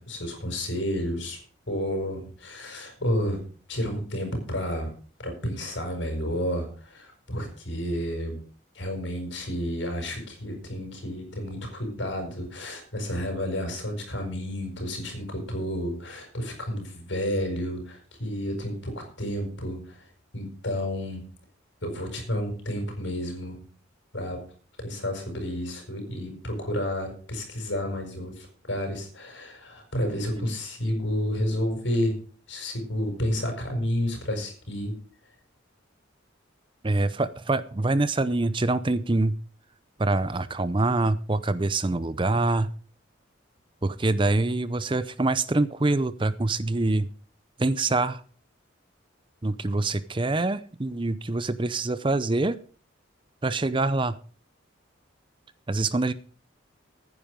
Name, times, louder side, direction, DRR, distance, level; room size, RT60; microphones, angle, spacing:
voice 1, 0.0-1.4 1.7-3.4 3.7-4.9 5.2-8.4 8.7-20.1 20.3-21.2 21.8-23.6 24.1-24.4 24.8-32.2 32.5-35.0, equal, 65° left, 4 dB, 6.1 m, -31 dB
voice 2, 36.8-39.4 40.0-42.7 43.8-47.1 47.6-48.2 49.4-52.6 53.4-54.2 55.7-56.1, right 2 dB, 25° right, 15 dB, 0.6 m, -25 dB
14.5 x 9.7 x 5.2 m, 0.41 s
head